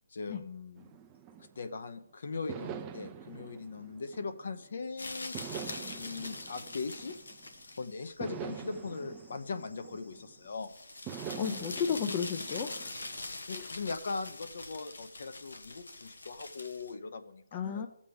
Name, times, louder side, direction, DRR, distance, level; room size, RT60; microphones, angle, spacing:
voice 1, 0.1-0.9 1.6-7.1 7.8-10.7 13.2-17.9, left 4 dB, 60° left, 10 dB, 0.9 m, -40 dB
sound 1, 0.8-1.9 2.5-4.7 5.3-7.6 8.2-10.5 11.1-13.2, right 8 dB, 20° right, 0.6 m, -45 dB
sound 2, 5.0-16.9, left 2 dB, 85° left, 1.3 m, -44 dB
voice 2, 11.4-12.9 13.5-13.7 17.5-17.9, left 7 dB, 25° left, 7 dB, 0.6 m, -33 dB
14.5 x 7.4 x 3.5 m, 0.73 s
hypercardioid pair, 155°, 0 cm